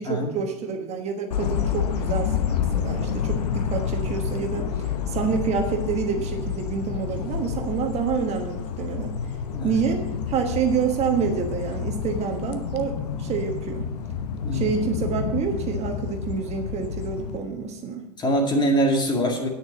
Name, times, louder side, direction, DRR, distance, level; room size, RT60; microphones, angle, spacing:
voice 1, 0.0-9.1 9.6-13.9 14.5-18.1, right 6 dB, 35° right, 4 dB, 1.3 m, -28 dB
sound 1, 1.3-17.4, left 7 dB, 80° left, 1.0 m, -29 dB
voice 2, 14.4-14.7 18.2-19.5, right 1 dB, 20° left, 2 dB, 2.2 m, -23 dB
9.4 x 6.4 x 7.2 m, 0.90 s
hypercardioid pair, 110°, 20 cm